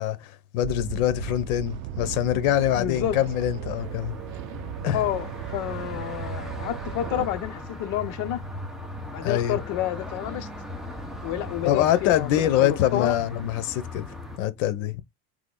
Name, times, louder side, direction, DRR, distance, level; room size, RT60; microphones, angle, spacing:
voice 1, 0.0-4.2 4.8-5.0 9.2-9.6 11.6-14.1 14.4-15.0, left 12 dB, 65° left, 1.0 m, -24 dB
sound 1, 0.6-7.3, right 12 dB, 65° right, 0.6 m, -36 dB
voice 2, 2.7-3.2 4.9-8.4 9.1-10.5 11.2-13.2, left 12 dB, 45° left, 0.7 m, -29 dB
sound 2, 3.8-14.4, left 1 dB, ahead, 0.8 m, -38 dB
3.7 x 3.0 x 3.8 m
supercardioid pair, 135°, 42 cm